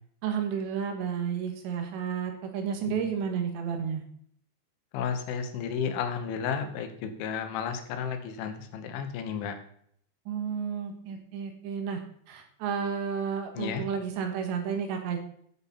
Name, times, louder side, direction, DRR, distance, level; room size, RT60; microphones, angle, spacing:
voice 1, 0.2-4.0 10.3-12.0 12.3-15.2, right 7 dB, 75° right, 5 dB, 3.6 m, -31 dB
voice 2, 4.9-9.6 13.6-13.9, left 7 dB, 90° left, 7 dB, 3.7 m, -32 dB
14.5 x 7.1 x 4.2 m, 0.66 s
omnidirectional pair, 5.3 m